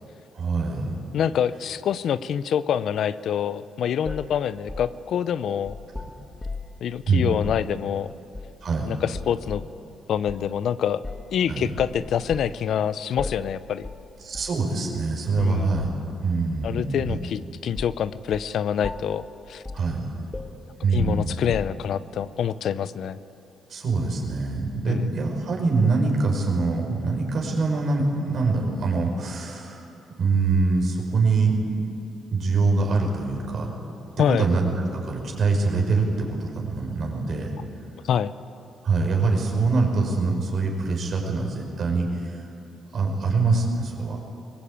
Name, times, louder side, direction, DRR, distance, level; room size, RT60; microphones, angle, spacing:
voice 1, 0.3-0.9 6.0-6.1 7.1-7.3 8.6-8.9 11.5-11.7 14.2-15.9 16.2-17.2 19.7-20.1 20.8-21.4 23.7-29.9 30.2-31.6 32.3-33.7 34.4-37.5 38.8-42.5 42.9-44.2, right 3 dB, 55° right, 1 dB, 5.4 m, -24 dB
voice 2, 1.1-5.8 6.8-8.1 8.9-9.6 10.1-11.0 11.3-13.9 15.4-15.7 16.6-19.6 20.9-23.2 24.9-25.1 34.2-34.5 38.0-38.3, left 9 dB, 70° left, 15 dB, 0.7 m, -26 dB
sound 1, 4.0-6.8 7.4-7.7 8.3-8.8 9.1-9.7 10.3-10.5 11.0-11.4 11.8-12.6 13.2-13.5 13.8-14.1 14.3-14.6 15.4-16.0 16.6-17.4 17.7-18.0 18.3-18.5 18.8-19.2 19.6-19.9 20.3-22.0, left 3 dB, 15° left, 1.8 m, -37 dB
22.0 x 19.5 x 8.9 m, 2.7 s
cardioid pair, 90°, 0 cm